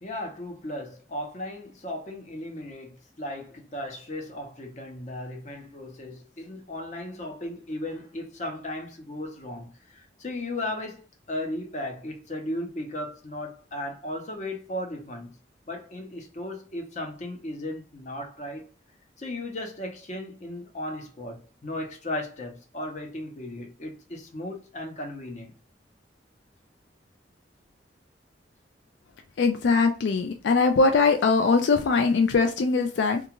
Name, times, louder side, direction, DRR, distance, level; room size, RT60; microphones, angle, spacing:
voice 1, 0.0-15.4 15.7-18.7 19.2-25.5, left 1 dB, 40° left, 0.7 m, -36 dB
voice 2, 29.4-33.2, left 4 dB, 80° left, 0.4 m, -21 dB
2.4 x 2.3 x 2.9 m
head